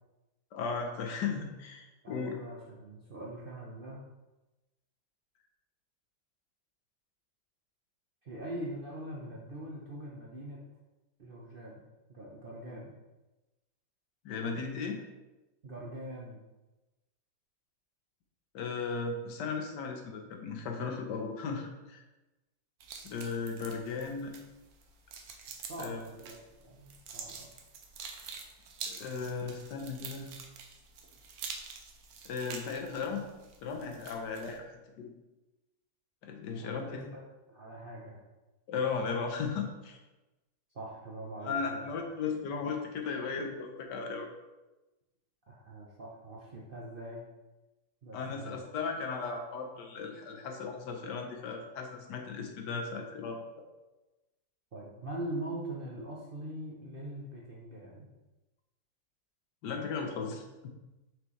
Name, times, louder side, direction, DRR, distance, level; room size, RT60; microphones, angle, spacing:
voice 1, 0.5-2.4 14.2-15.0 18.5-22.0 23.0-24.3 25.8-26.0 28.2-28.3 28.9-30.3 32.2-33.3 33.6-35.1 36.2-37.1 38.7-40.0 41.4-44.3 48.1-53.4 59.6-60.8, left 5 dB, 75° left, 3 dB, 1.4 m, -36 dB
voice 2, 2.0-4.0 8.2-10.6 11.2-11.8 12.1-13.0 15.6-16.4 25.7-27.5 36.6-37.2 37.5-38.2 40.7-41.9 45.5-47.2 48.0-48.6 54.7-58.1, right 1 dB, 50° right, -4 dB, 0.7 m, -42 dB
sound 1, 22.8-34.6, right 5 dB, 65° right, 1.1 m, -47 dB
6.1 x 5.2 x 3.1 m, 1.1 s
omnidirectional pair, 1.9 m